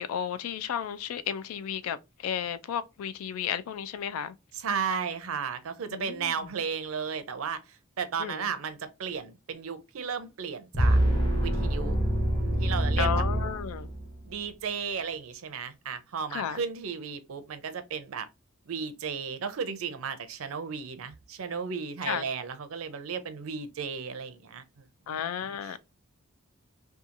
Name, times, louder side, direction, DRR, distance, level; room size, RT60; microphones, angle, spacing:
voice 1, 0.0-4.3 5.9-6.3 8.2-8.5 13.0-13.9 16.3-16.6 22.0-22.2 25.1-25.8, left 8 dB, 80° left, 0.3 m, -33 dB
voice 2, 4.5-11.0 11.4-12.0 12.6-13.2 14.3-18.3 18.7-24.8 25.6-25.8, right 6 dB, 75° right, 0.5 m, -34 dB
sound 1, 10.7-14.2, right 1 dB, 20° left, 0.8 m, -26 dB
2.8 x 2.3 x 2.5 m
head